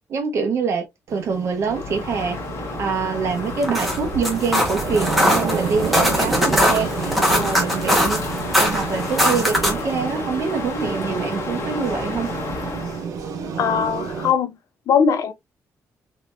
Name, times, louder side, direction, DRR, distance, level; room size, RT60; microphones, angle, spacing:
voice 1, 0.1-0.8 1.1-2.4 2.8-8.2 8.6-12.3, right 5 dB, 50° right, 1.1 m, -25 dB
sound 1, 1.1-14.3, right 6 dB, 80° right, 1.2 m, -30 dB
Crow, 1.6-13.1, left 4 dB, 45° left, 1.4 m, -31 dB
sound 2, 3.5-9.9, equal, ahead, 1.3 m, -21 dB
voice 2, 13.6-14.5 14.9-15.3, left 7 dB, 65° left, 0.7 m, -20 dB
4.2 x 3.2 x 2.6 m
cardioid pair, 145°, 6 cm